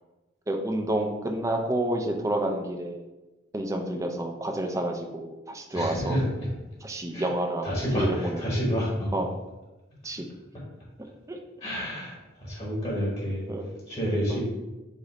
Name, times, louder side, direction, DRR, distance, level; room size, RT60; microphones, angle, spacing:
voice 1, 0.5-3.0 3.5-6.2 6.8-7.7 7.9-8.2 9.1-9.3 10.0-10.3 11.3-11.4 13.5-13.6 14.3-14.4, right 1 dB, 15° right, 4 dB, 0.4 m, -29 dB
voice 2, 5.7-6.5 7.1-7.3 7.6-9.1 11.6-14.5, equal, 35° left, -5 dB, 1.2 m, -29 dB
4.9 x 2.6 x 4.1 m, 1.1 s
head